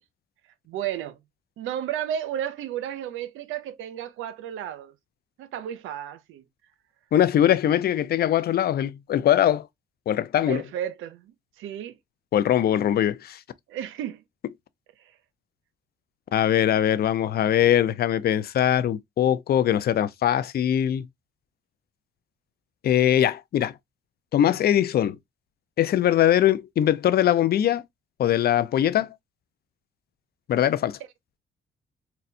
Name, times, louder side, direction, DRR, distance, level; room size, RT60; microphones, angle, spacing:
voice 1, 0.7-1.2 1.6-4.9 5.4-6.4 10.5-11.9 13.7-14.2, right 10 dB, 85° right, 0.6 m, -33 dB
voice 2, 7.1-9.7 10.1-10.6 12.3-13.4 16.3-21.1 22.8-23.7 24.3-25.2 25.8-27.8 28.2-29.1 30.5-31.0, left 11 dB, 50° left, 0.4 m, -21 dB
4.2 x 2.2 x 2.6 m
cardioid pair, 90°, 20 cm